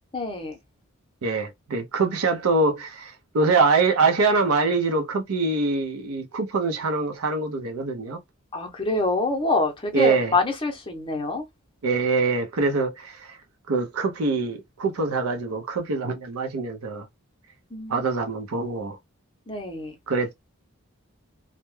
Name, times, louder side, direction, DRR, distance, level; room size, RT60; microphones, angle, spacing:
voice 1, 0.1-0.6 8.5-11.5 17.7-18.0 19.5-19.9, left 3 dB, 25° left, 0.6 m, -26 dB
voice 2, 1.2-8.2 9.9-10.3 11.8-13.4 13.7-17.1 17.9-19.0 20.1-20.3, right 3 dB, 85° right, 0.5 m, -24 dB
2.2 x 2.0 x 3.0 m
head